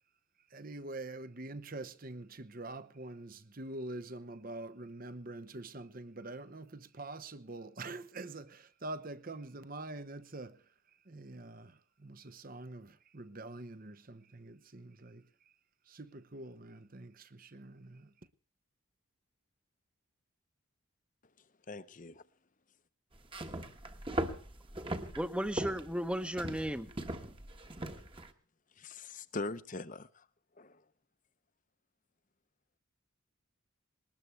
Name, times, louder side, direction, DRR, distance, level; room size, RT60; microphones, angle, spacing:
voice 1, 0.5-10.6 11.1-15.2 15.9-18.1, right 2 dB, 40° right, 0.9 m, -45 dB
voice 2, 21.7-22.2 28.8-30.2 30.6-30.8, left 2 dB, 35° left, 0.8 m, -42 dB
sound 1, 23.2-28.3, right 1 dB, 25° right, 1.3 m, -39 dB
voice 3, 25.1-26.9, equal, 5° right, 0.9 m, -35 dB
21.0 x 19.5 x 3.3 m
head